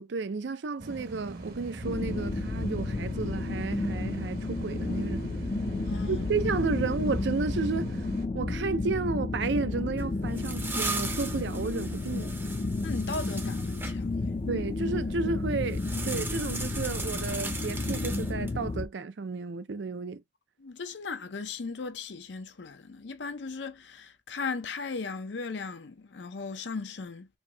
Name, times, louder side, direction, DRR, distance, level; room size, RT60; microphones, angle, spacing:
voice 1, 0.0-5.3 6.1-7.9 8.3-12.3 14.5-20.2, right 4 dB, 75° right, 0.5 m, -32 dB
sound 1, 0.8-8.3, right 2 dB, 55° right, 1.0 m, -41 dB
sound 2, 1.8-18.9, left 2 dB, 35° left, 0.4 m, -32 dB
voice 2, 5.8-6.3 12.8-14.3 20.6-27.3, left 4 dB, 75° left, 0.6 m, -37 dB
sound 3, 10.0-13.9 15.7-18.6, right 3 dB, 15° right, 0.6 m, -38 dB
4.5 x 2.6 x 2.2 m
head